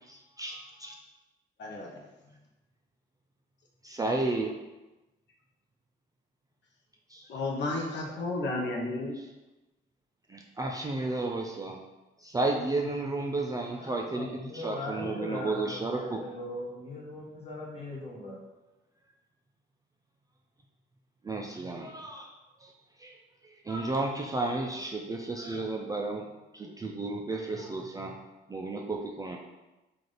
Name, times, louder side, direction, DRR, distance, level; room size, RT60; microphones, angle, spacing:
voice 1, 0.0-0.9 3.8-4.5 7.1-7.3 10.3-11.8 12.2-16.2 21.2-22.3 22.6-22.7 23.0-23.2 23.4-26.3 26.5-28.2 28.5-29.4, right 2 dB, 20° right, 0 dB, 0.3 m, -33 dB
voice 2, 1.6-2.0 7.3-9.1, left 2 dB, 65° left, -1 dB, 0.7 m, -32 dB
voice 3, 13.7-18.4, left 1 dB, 30° left, -5 dB, 1.3 m, -40 dB
3.2 x 2.5 x 3.9 m, 1.0 s
cardioid pair, 90°, 20 cm